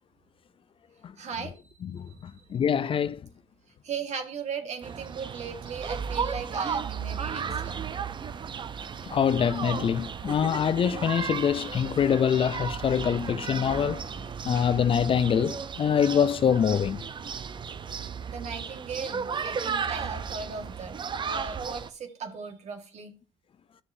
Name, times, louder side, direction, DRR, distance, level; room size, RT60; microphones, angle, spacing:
voice 1, 1.2-1.6 3.8-7.9 18.3-23.1, right 5 dB, 50° right, 1.6 m, -37 dB
voice 2, 2.5-3.2 9.1-14.0 14.4-17.0, left 8 dB, 40° left, 0.4 m, -24 dB
sound 1, 4.8-21.9, right 6 dB, 35° right, 0.6 m, -34 dB
11.0 x 6.6 x 2.7 m
supercardioid pair, 85°, 14 cm